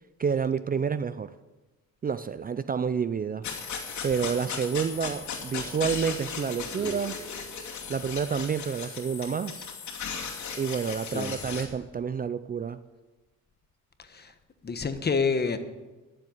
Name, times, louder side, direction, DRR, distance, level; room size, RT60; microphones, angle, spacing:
voice 1, 0.2-1.3 2.0-3.4 4.0-7.2 7.9-9.7 10.5-12.8, right 6 dB, 30° right, 14 dB, 0.5 m, -29 dB
sound 1, 3.4-11.7, left 6 dB, 70° left, 2.6 m, -37 dB
sound 2, 6.5-8.3 8.6-10.8, left 1 dB, 15° right, 3.5 m, -46 dB
voice 2, 14.0-14.3 14.6-15.6, left 5 dB, 35° left, 9 dB, 1.3 m, -28 dB
11.5 x 7.7 x 9.5 m, 1.2 s
cardioid pair, 90°, 30 cm